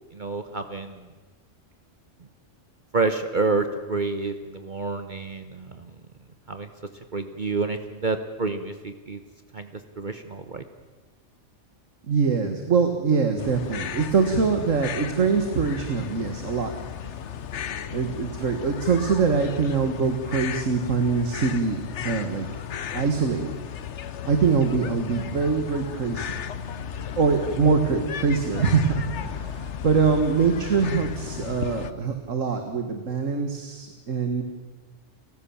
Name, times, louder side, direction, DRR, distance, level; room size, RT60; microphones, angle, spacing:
voice 1, 0.1-1.0 2.9-5.9 6.5-6.7 7.1-9.2 9.5-9.7 10.0-10.6, right 3 dB, 40° right, 8 dB, 1.1 m, -28 dB
voice 2, 12.1-16.7 17.9-22.5 22.9-23.5 24.3-26.4 27.2-34.4, right 5 dB, 85° right, 6 dB, 2.0 m, -24 dB
sound 1, 13.4-31.9, left 8 dB, 70° left, 1.1 m, -35 dB
30.0 x 15.0 x 7.2 m, 1.3 s
omnidirectional pair, 1.3 m